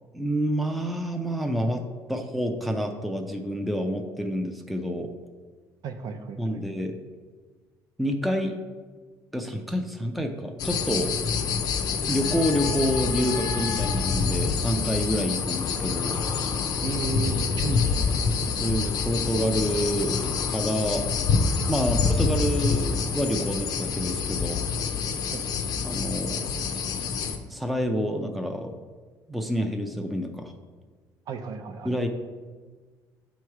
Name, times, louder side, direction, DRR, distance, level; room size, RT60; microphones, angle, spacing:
voice 1, 0.1-1.8 2.1-5.1 6.4-7.0 8.0-8.6 9.3-11.1 12.1-16.2 18.5-21.1 21.7-24.6 25.8-26.5 27.5-28.8 29.3-30.5 31.8-32.1, equal, ahead, 4 dB, 0.4 m, -28 dB
voice 2, 5.8-6.6 16.8-18.1 25.3-25.4 31.3-31.9, right 5 dB, 55° right, 7 dB, 0.5 m, -34 dB
sound 1, 10.6-27.4, left 5 dB, 60° left, 0.6 m, -27 dB
7.8 x 3.1 x 4.7 m, 1.5 s
cardioid pair, 140°, 8 cm